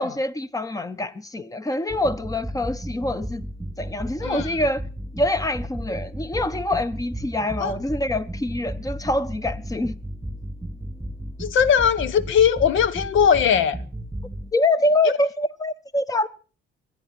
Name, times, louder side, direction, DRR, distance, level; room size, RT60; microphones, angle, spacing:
voice 1, 0.0-3.5 3.8-4.8 5.1-10.0 14.5-16.3, left 1 dB, 15° left, 1.1 m, -25 dB
sound 1, 1.9-14.5, right 1 dB, 10° right, 2.7 m, -34 dB
voice 2, 11.4-13.8, left 7 dB, 80° left, 1.0 m, -19 dB
24.5 x 9.2 x 4.3 m
cardioid pair, 90°, 20 cm